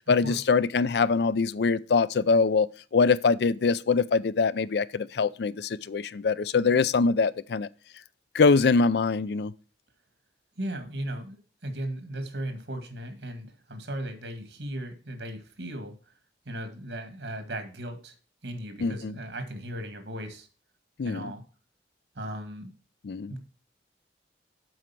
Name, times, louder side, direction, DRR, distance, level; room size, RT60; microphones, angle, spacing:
voice 1, 0.1-2.7 2.9-7.7 8.3-9.5 18.8-19.1 21.0-21.3 23.0-23.3, left 4 dB, 65° left, 0.4 m, -23 dB
voice 2, 10.6-15.9 16.5-18.1 18.4-20.5 21.0-21.4 22.2-22.7 23.3-23.4, right 1 dB, 75° right, 1.9 m, -36 dB
7.9 x 5.1 x 5.8 m
head